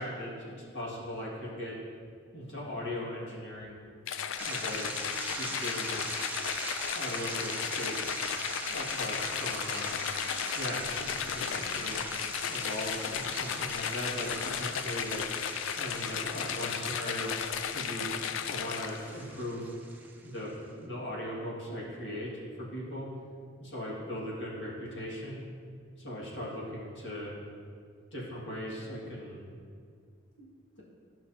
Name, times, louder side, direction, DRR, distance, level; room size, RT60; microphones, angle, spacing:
voice 1, 0.0-1.7 2.3-3.8 4.4-4.9 5.3-8.0 8.7-10.0 10.3-12.0 12.5-15.2 15.8-17.3 17.7-18.1 18.5-19.7 20.2-22.3 22.6-23.1 23.6-25.4 26.0-27.3 28.1-29.4 30.4-30.5, left 1 dB, 60° left, -5 dB, 2.0 m, -39 dB
sound 1, 4.1-19.2, left 8 dB, 75° left, 0.4 m, -35 dB
sound 2, 4.4-20.5, right 2 dB, 10° right, 0.6 m, -41 dB
12.0 x 5.8 x 2.8 m, 2.2 s
head